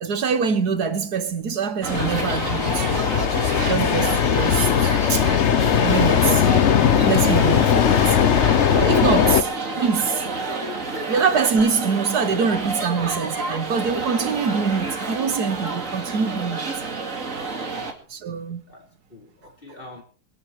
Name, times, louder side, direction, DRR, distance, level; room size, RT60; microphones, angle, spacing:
voice 1, 0.0-3.0 3.5-4.7 5.1-5.3 5.8-6.5 7.0-8.2 8.7-9.5 9.8-10.3 11.1-16.6 18.1-18.6, right 5 dB, 70° right, 1.8 m, -24 dB
sound 1, 1.8-17.9, right 3 dB, 55° right, 2.8 m, -29 dB
sound 2, 1.9-9.4, left 8 dB, 50° left, 1.0 m, -19 dB
voice 2, 17.7-18.0 18.7-20.0, left 2 dB, 30° left, 5.2 m, -46 dB
21.0 x 12.0 x 4.8 m
omnidirectional pair, 1.7 m